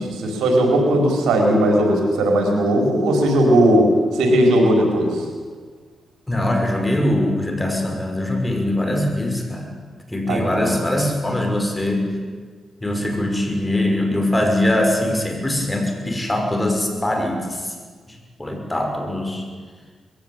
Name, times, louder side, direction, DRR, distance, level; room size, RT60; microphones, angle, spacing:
voice 1, 0.0-3.9 4.1-5.2 10.3-10.7, right 1 dB, 90° right, 2 dB, 4.6 m, -17 dB
voice 2, 6.3-9.7 10.1-12.1 12.8-17.7 18.1-19.4, left 1 dB, 15° left, 3 dB, 6.0 m, -22 dB
21.5 x 16.5 x 9.1 m, 1.5 s
cardioid pair, 60°, 0 cm